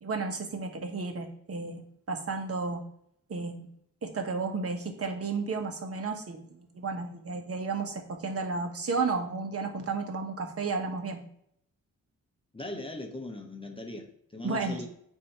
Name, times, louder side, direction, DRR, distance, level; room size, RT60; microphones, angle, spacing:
voice 1, 0.0-2.8 3.3-3.7 4.0-11.2 14.4-14.8, right 4 dB, 45° right, 5 dB, 1.2 m, -33 dB
voice 2, 12.5-14.9, left 2 dB, 15° left, 2 dB, 0.8 m, -39 dB
8.3 x 2.8 x 4.6 m, 0.69 s
cardioid pair, 90°, 33 cm